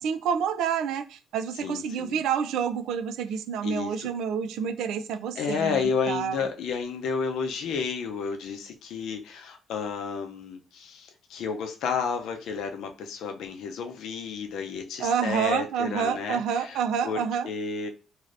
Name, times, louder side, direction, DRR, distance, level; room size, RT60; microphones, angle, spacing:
voice 1, 0.0-6.4 15.0-17.5, right 7 dB, 90° right, 0.3 m, -28 dB
voice 2, 1.6-2.2 3.6-4.1 5.4-17.9, left 6 dB, 85° left, 0.5 m, -31 dB
3.2 x 2.6 x 2.5 m
cardioid pair, 120°, 0 cm